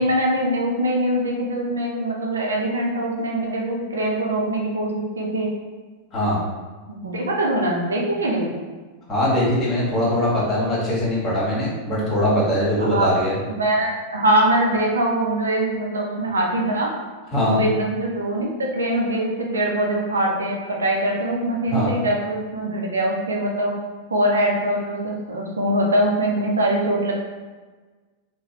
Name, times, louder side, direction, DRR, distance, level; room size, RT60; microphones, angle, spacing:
voice 1, 0.0-5.5 6.9-8.5 12.8-13.2 13.6-16.9 17.5-23.7 24.1-27.1, right 1 dB, 70° right, -1 dB, 0.5 m, -22 dB
voice 2, 9.1-13.3 17.3-17.6 21.7-21.9, left 1 dB, 20° left, -7 dB, 1.3 m, -21 dB
3.9 x 2.1 x 2.7 m, 1.3 s
figure-of-eight pair, 90°, 0 cm